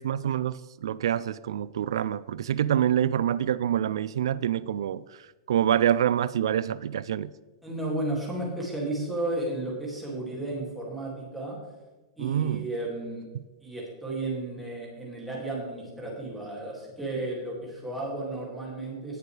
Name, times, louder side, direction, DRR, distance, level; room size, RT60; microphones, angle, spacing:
voice 1, 0.0-7.3 12.2-12.7 13.3-13.4, right 10 dB, 85° right, 0.3 m, -26 dB
voice 2, 7.6-11.6 12.2-13.3 13.6-19.2, right 2 dB, 5° right, 2.3 m, -33 dB
17.5 x 6.9 x 3.3 m
supercardioid pair, 175°, 3 cm